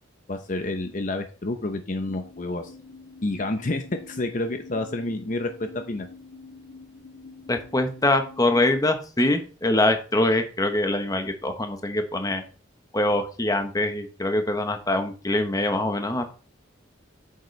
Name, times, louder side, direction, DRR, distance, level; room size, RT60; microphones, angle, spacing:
voice 1, 0.3-2.7 3.2-6.1, left 2 dB, 40° left, 6 dB, 0.7 m, -29 dB
sound 1, 2.0-8.9, left 3 dB, 85° left, 3.2 m, -46 dB
voice 2, 7.5-12.4 12.9-16.2, left 1 dB, 20° left, 6 dB, 1.0 m, -24 dB
8.7 x 6.7 x 3.2 m, 0.37 s
head